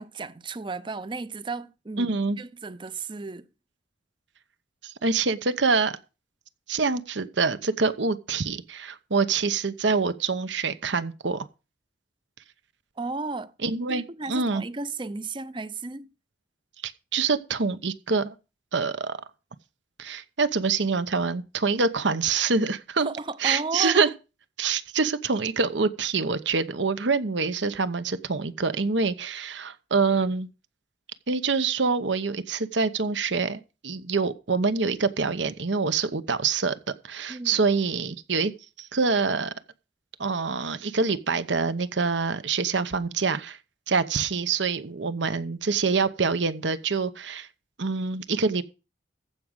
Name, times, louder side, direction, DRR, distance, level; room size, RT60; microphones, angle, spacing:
voice 1, 0.0-3.5 13.0-13.5 13.9-16.1 23.0-24.1 37.3-37.6, right 3 dB, 25° right, 0.6 m, -34 dB
voice 2, 2.0-2.4 4.8-6.0 6.7-11.5 13.6-14.0 14.3-14.6 16.8-18.3 18.7-19.2 20.0-23.1 23.4-24.1 24.6-30.5 31.3-36.8 37.0-38.5 38.8-39.5 40.2-43.6 43.9-47.5 47.8-48.6, right 4 dB, 70° right, 0.9 m, -25 dB
14.5 x 5.1 x 7.9 m
head